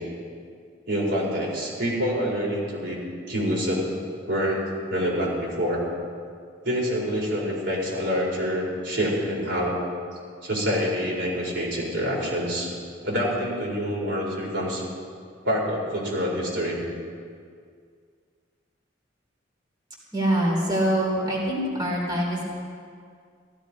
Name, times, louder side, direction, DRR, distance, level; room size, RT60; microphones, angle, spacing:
voice 1, 0.8-3.0 3.3-3.8 4.3-4.6 4.9-5.8 6.6-9.8 10.4-12.7 13.0-14.8 15.4-16.8, equal, 70° right, -4 dB, 4.7 m, -26 dB
voice 2, 20.1-22.4, right 1 dB, 25° right, -3 dB, 3.2 m, -24 dB
15.0 x 13.0 x 5.1 m, 2.2 s
head